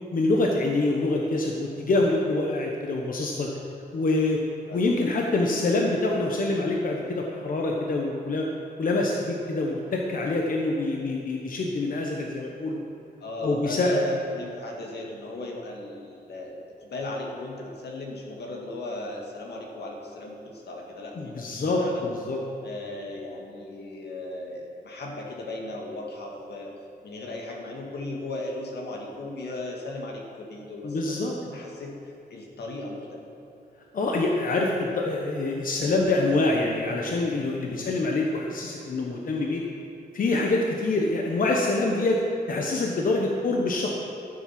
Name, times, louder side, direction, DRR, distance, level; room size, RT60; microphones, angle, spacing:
voice 1, 0.1-3.5 3.9-4.4 4.7-8.5 8.8-12.8 13.4-14.0 21.2-22.4 30.8-31.4 33.9-39.6 40.1-42.2 42.5-43.9, left 2 dB, 55° left, 0 dB, 1.1 m, -25 dB
voice 2, 13.2-22.1 22.6-26.7 27.0-32.0 32.3-33.2 37.6-37.9, left 2 dB, 85° left, 0 dB, 2.0 m, -36 dB
13.5 x 7.5 x 6.0 m, 2.9 s
wide cardioid pair, 145°, 17 cm